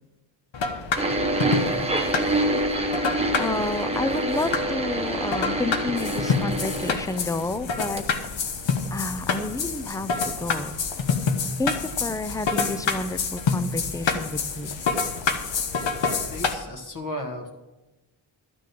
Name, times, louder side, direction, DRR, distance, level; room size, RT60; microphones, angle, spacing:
sound 1, 0.5-16.5, left 5 dB, 75° left, 1.2 m, -28 dB
sound 2, 1.0-7.7 8.0-8.1 8.9-9.0, right 1 dB, 15° right, 1.0 m, -26 dB
voice 1, 3.4-8.0 8.9-10.7 11.6-14.7, left 2 dB, 10° left, 11 dB, 0.4 m, -30 dB
voice 2, 16.0-17.5, left 1 dB, 45° left, 2 dB, 1.4 m, -35 dB
12.5 x 6.1 x 7.5 m, 1.1 s
wide cardioid pair, 160°, 45 cm